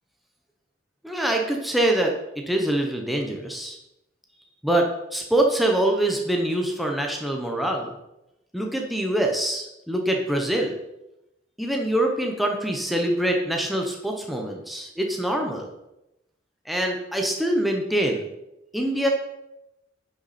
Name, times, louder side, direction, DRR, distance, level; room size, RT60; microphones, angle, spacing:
voice 1, 1.0-2.1 2.5-3.8 4.6-7.9 8.5-10.7 11.6-15.7 16.7-18.3 18.7-19.1, right 1 dB, ahead, 1 dB, 1.0 m, -24 dB
9.7 x 6.0 x 4.3 m, 0.90 s
head